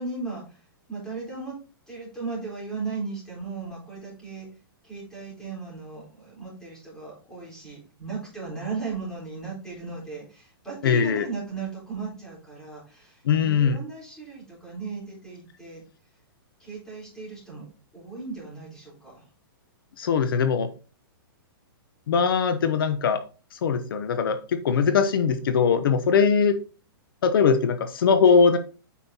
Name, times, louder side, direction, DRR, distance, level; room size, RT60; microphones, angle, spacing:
voice 1, 0.0-1.5 1.9-4.5 4.8-15.8 16.6-17.7 17.9-19.3, right 4 dB, 5° left, -5 dB, 3.8 m, -36 dB
voice 2, 10.8-11.2 13.2-13.8 20.0-20.7 22.1-23.2 23.5-26.6 27.2-28.6, left 6 dB, 70° left, 10 dB, 0.8 m, -21 dB
8.3 x 5.6 x 2.8 m, 0.35 s
hypercardioid pair, 165°, 12 cm